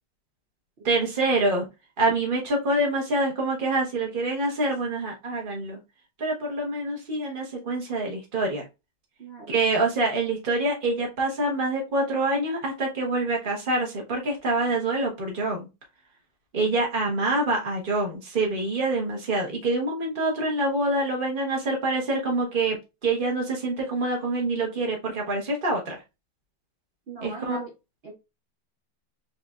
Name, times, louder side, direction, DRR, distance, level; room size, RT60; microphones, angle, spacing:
voice 1, 0.8-1.6 2.0-5.8 6.2-8.6 9.5-15.7 16.5-22.8 23.0-26.0 27.2-27.6, right 2 dB, 30° right, 0 dB, 1.3 m, -26 dB
voice 2, 9.2-9.6 27.1-27.7 28.0-28.1, right 3 dB, 65° right, 0 dB, 0.6 m, -40 dB
4.8 x 3.3 x 2.4 m, 0.25 s
omnidirectional pair, 2.2 m